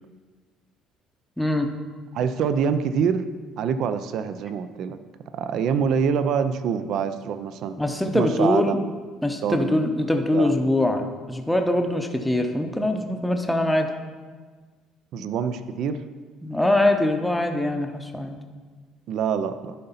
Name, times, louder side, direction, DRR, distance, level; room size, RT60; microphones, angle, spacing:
voice 1, 1.4-1.7 7.8-8.8 9.2-13.9 15.2-15.3 16.4-18.4, left 1 dB, 5° left, 4 dB, 0.7 m, -23 dB
voice 2, 2.1-3.3 3.6-5.0 5.3-7.8 8.1-8.9 9.4-10.0 10.3-10.5 15.1-16.0 19.1-19.8, right 7 dB, 60° right, 11 dB, 0.5 m, -25 dB
10.5 x 4.0 x 5.6 m, 1.4 s
cardioid pair, 120°, 0 cm